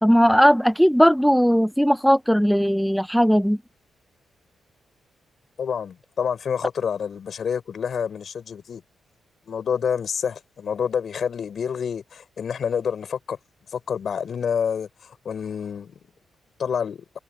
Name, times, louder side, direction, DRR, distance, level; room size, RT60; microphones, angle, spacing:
voice 1, 0.0-3.6, equal, ahead, 0.6 m, -18 dB
voice 2, 5.6-8.8 9.5-13.4 13.7-15.9 16.6-17.0, left 7 dB, 65° left, 4.9 m, -28 dB
supercardioid pair, 45°, 0 cm